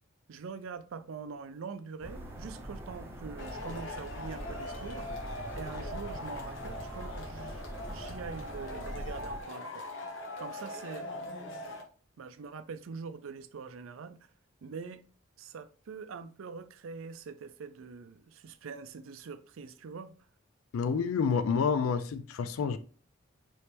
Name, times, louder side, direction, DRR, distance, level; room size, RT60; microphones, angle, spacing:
voice 1, 0.3-5.1 5.5-7.6 7.9-9.9 10.4-11.8 12.2-14.2 14.6-15.0 15.4-20.1, right 5 dB, 75° right, 0.4 m, -44 dB
sound 1, 2.0-9.4, right 1 dB, 10° right, 0.7 m, -43 dB
Male speech man speaking / Shout / Clapping, 3.4-11.8, left 1 dB, 60° left, 1.0 m, -41 dB
voice 2, 20.7-22.8, left 5 dB, 85° left, 0.4 m, -28 dB
4.4 x 3.1 x 3.3 m
head